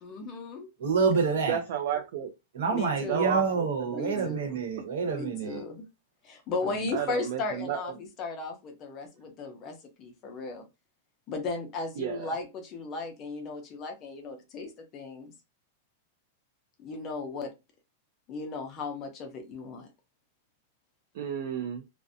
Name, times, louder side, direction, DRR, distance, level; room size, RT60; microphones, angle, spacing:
voice 1, 0.0-0.7 2.7-3.3 3.9-4.6 5.1-5.9 6.2-10.7 11.3-15.3 16.8-17.5 18.3-19.9, left 3 dB, 25° left, 0.5 m, -36 dB
voice 2, 0.8-1.6 2.5-5.6, right 5 dB, 75° right, 1.0 m, -27 dB
voice 3, 1.4-2.3 3.1-4.4 6.9-7.8 12.0-12.3 21.1-21.8, right 8 dB, 45° right, 0.4 m, -32 dB
2.5 x 2.1 x 2.6 m
supercardioid pair, 175°, 0 cm